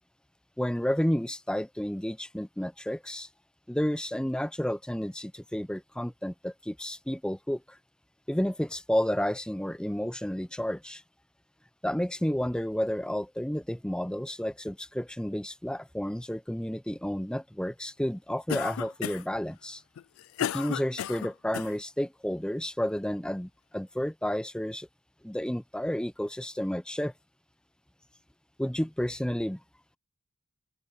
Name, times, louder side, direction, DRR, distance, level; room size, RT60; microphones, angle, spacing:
voice 1, 0.6-3.3 3.7-7.8 8.3-11.0 11.8-19.8 20.4-24.9 25.2-27.1 28.6-29.6, equal, 5° left, 0.6 m, -31 dB
Cough, 18.5-19.4 20.0-21.7, left 9 dB, 65° left, 0.3 m, -33 dB
open air
head